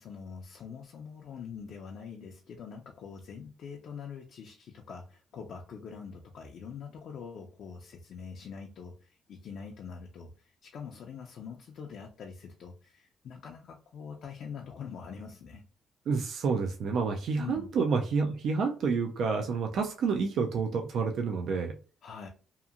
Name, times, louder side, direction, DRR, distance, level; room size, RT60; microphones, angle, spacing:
voice 1, 0.0-15.6 17.4-17.7 22.0-22.3, left 6 dB, 65° left, 1 dB, 0.4 m, -44 dB
voice 2, 16.1-21.7, right 5 dB, 70° right, 3 dB, 0.4 m, -29 dB
2.8 x 2.4 x 2.5 m, 0.36 s
cardioid pair, 90°, 0 cm